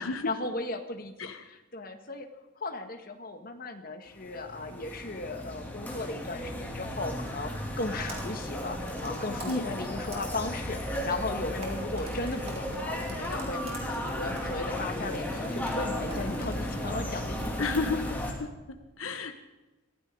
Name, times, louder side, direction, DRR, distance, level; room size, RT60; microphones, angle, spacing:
voice 1, 0.0-2.3 2.6-18.0, left 2 dB, 45° left, 5 dB, 1.6 m, -36 dB
sound 1, 4.1-18.3, left 1 dB, 10° left, 2.8 m, -35 dB
Computer keyboard, 7.5-17.2, right 2 dB, 30° right, 3.5 m, -48 dB
voice 2, 17.6-19.3, left 3 dB, 80° left, 8 dB, 1.1 m, -32 dB
23.5 x 15.0 x 3.9 m, 1.1 s
head